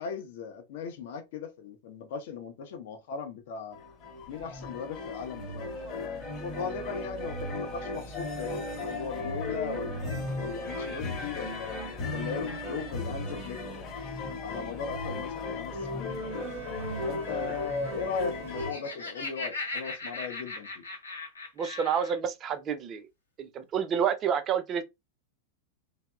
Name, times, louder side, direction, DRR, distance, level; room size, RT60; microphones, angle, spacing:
voice 1, 0.0-3.8 4.3-5.7 6.4-11.8 12.1-14.0 14.4-16.5 17.0-20.8, left 6 dB, 55° left, 0.5 m, -38 dB
sound 1, 3.7-18.7, left 2 dB, 30° left, 0.8 m, -36 dB
Bowed string instrument, 16.1-19.3, right 6 dB, 60° right, 0.7 m, -47 dB
Laughter, 18.3-22.2, left 3 dB, 75° left, 0.9 m, -38 dB
voice 2, 21.6-23.1 23.4-24.8, right 7 dB, 30° right, 0.4 m, -29 dB
2.8 x 2.0 x 2.3 m
figure-of-eight pair, 90°, 0 cm